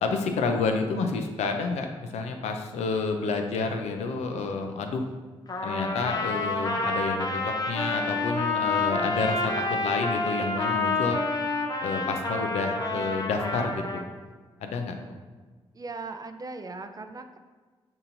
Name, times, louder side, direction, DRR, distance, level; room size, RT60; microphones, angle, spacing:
voice 1, 0.0-5.0 5.6-7.4 7.7-9.5 9.8-11.2 11.8-14.0 14.6-15.0, left 4 dB, 80° left, 5 dB, 0.4 m, -29 dB
Trumpet, 5.5-14.0, left 2 dB, 35° left, 0.6 m, -28 dB
voice 2, 15.7-17.4, right 3 dB, 35° right, 7 dB, 0.4 m, -38 dB
5.5 x 2.8 x 2.6 m, 1.4 s
supercardioid pair, 45°, 11 cm